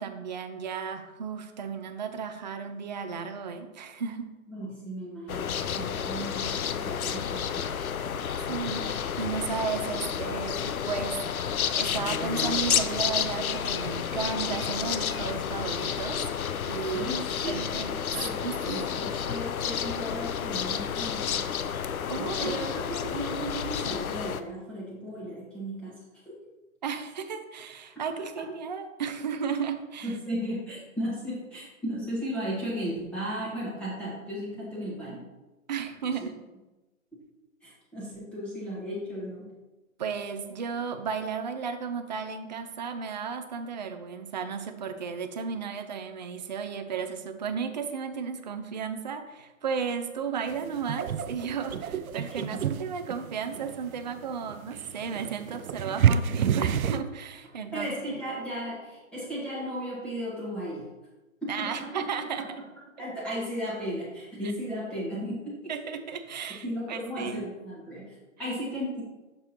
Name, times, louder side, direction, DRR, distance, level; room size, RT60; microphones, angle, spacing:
voice 1, 0.0-4.3 8.5-17.1 17.5-17.9 18.4-18.8 22.1-22.7 26.8-30.1 35.7-36.3 40.0-58.2 61.5-62.5 65.7-67.5, right 6 dB, 35° right, 7 dB, 0.4 m, -34 dB
voice 2, 4.5-7.8 16.9-17.6 18.1-21.6 22.2-26.0 30.0-35.3 36.0-36.2 37.6-39.5 52.5-52.6 57.7-60.9 61.4-62.1 62.4-62.5 63.0-65.7 66.5-69.0, equal, ahead, -9 dB, 1.4 m, -35 dB
sound 1, 5.3-24.4, left 8 dB, 80° left, 0.6 m, -30 dB
sound 2, 50.5-57.0, right 8 dB, 80° right, 0.5 m, -29 dB
6.2 x 4.8 x 4.2 m, 1.1 s
figure-of-eight pair, 140°, 42 cm